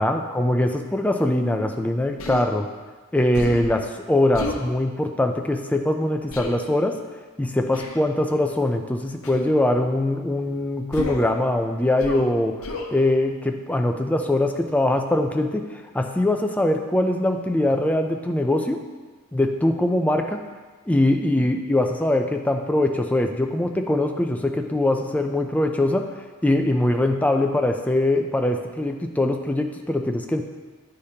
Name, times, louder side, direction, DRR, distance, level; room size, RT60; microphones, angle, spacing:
voice 1, 0.0-2.7 3.1-7.0 7.4-12.5 12.9-18.8 19.3-20.4 20.9-26.0 26.4-30.4, left 1 dB, 5° left, 4 dB, 0.4 m, -22 dB
Human voice, 2.2-2.5 3.3-3.7 4.3-4.6 6.3-6.5 7.7-8.0 9.2-9.5 10.9-11.3 12.0-12.3 12.6-12.9, left 1 dB, 65° left, 0.8 m, -31 dB
9.2 x 5.0 x 2.8 m, 1.3 s
head